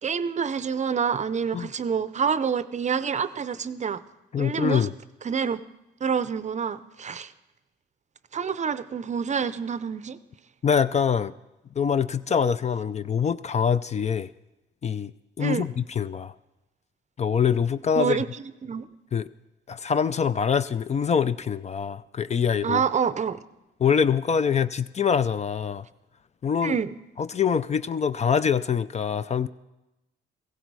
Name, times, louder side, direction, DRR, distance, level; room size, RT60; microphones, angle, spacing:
voice 1, 0.0-4.0 4.4-4.9 5.2-5.6 6.0-7.3 8.3-10.2 15.4-15.7 18.0-18.3 18.6-18.9 22.6-23.4 26.6-27.0, right 6 dB, 35° right, 0.6 m, -27 dB
voice 2, 4.3-4.9 10.6-11.3 11.8-14.3 14.8-15.1 15.4-16.3 17.2-18.2 19.1-19.3 19.7-22.8 23.8-25.9 26.4-26.8 27.2-29.5, left 7 dB, 35° left, 0.4 m, -24 dB
16.0 x 15.5 x 4.7 m
cardioid pair, 90°, 20 cm